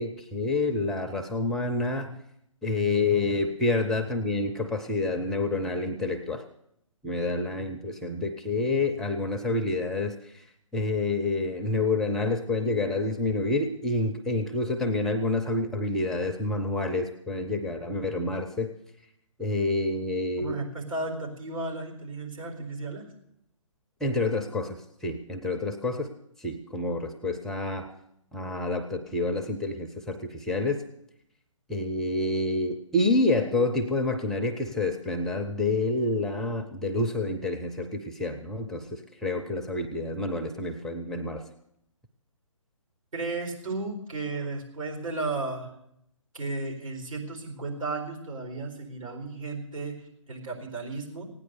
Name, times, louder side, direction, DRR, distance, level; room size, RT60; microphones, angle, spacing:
voice 1, 0.0-2.2 2.6-6.4 7.0-18.7 19.4-20.6 24.0-26.1 26.4-27.9 28.3-30.8 31.7-41.4, left 2 dB, 5° left, 3 dB, 0.4 m, -28 dB
voice 2, 20.4-23.1 43.1-45.7 46.3-51.3, right 3 dB, 75° right, 1 dB, 4.3 m, -34 dB
16.0 x 9.7 x 6.8 m, 0.78 s
figure-of-eight pair, 140°, 17 cm